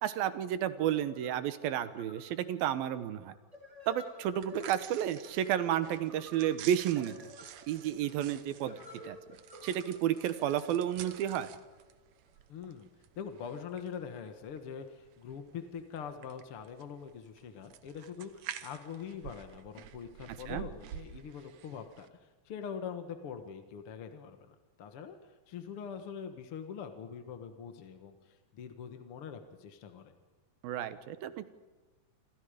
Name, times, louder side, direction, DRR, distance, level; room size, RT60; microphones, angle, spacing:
voice 1, 0.0-3.3 3.9-7.2 7.7-8.8 9.0-9.2 9.6-11.5 20.5-20.7 30.6-31.5, right 11 dB, 85° right, 12 dB, 2.9 m, -31 dB
sound 1, 0.8-12.4, left 1 dB, 10° right, 3.2 m, -54 dB
sound 2, 4.3-22.1, right 10 dB, 65° right, 2.1 m, -50 dB
voice 2, 12.5-12.9 13.2-25.2 25.5-30.1, left 7 dB, 55° left, 7 dB, 1.8 m, -43 dB
27.5 x 27.5 x 5.1 m, 1.2 s
omnidirectional pair, 4.1 m